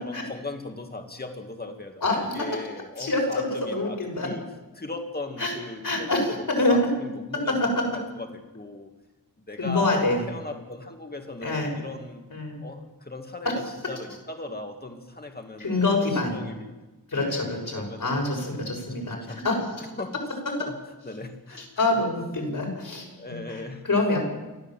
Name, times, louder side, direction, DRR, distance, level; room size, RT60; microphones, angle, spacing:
voice 1, 0.0-4.4 4.7-7.8 8.1-8.9 9.5-12.2 12.6-16.7 17.1-18.6 18.9-19.6 20.0-20.1 20.6-20.7 21.0-22.0 23.2-23.8, left 2 dB, 25° left, 4 dB, 2.4 m, -38 dB
voice 2, 2.0-2.3 3.0-4.3 5.4-5.5 5.8-6.2 6.6-6.8 7.6-7.8 9.6-10.2 11.4-11.7 12.3-12.6 15.6-16.4 17.1-19.5 21.6-24.2, left 2 dB, 65° left, 1 dB, 6.6 m, -26 dB
28.0 x 12.5 x 7.7 m, 1.1 s
wide cardioid pair, 110°, 36 cm